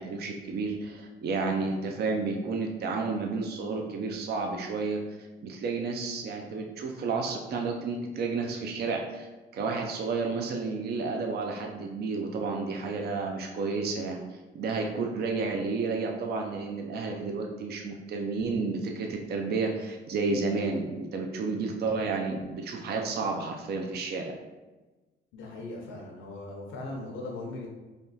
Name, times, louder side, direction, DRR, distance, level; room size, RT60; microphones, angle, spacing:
voice 1, 0.0-5.0 5.4-9.3 9.5-24.3, right 4 dB, 55° right, 2 dB, 0.5 m, -31 dB
voice 2, 25.3-27.7, left 2 dB, 80° left, -2 dB, 0.7 m, -39 dB
3.4 x 2.3 x 4.0 m, 1.2 s
cardioid pair, 90°, 20 cm